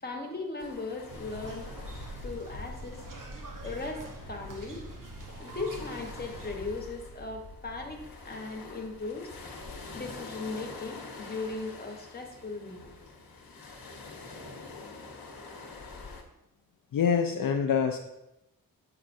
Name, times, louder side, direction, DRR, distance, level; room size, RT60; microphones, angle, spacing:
voice 1, 0.0-1.8 2.2-3.0 3.6-4.9 5.4-9.3 9.9-12.9, left 3 dB, 25° left, 1 dB, 1.0 m, -38 dB
sound 1, 0.6-16.2, left 3 dB, 85° left, 1.0 m, -46 dB
sound 2, 1.1-6.5, right 1 dB, 60° right, 0.9 m, -43 dB
voice 2, 16.9-18.0, left 7 dB, 65° left, 4 dB, 0.5 m, -25 dB
7.3 x 5.7 x 2.6 m, 0.90 s
wide cardioid pair, 110°, 36 cm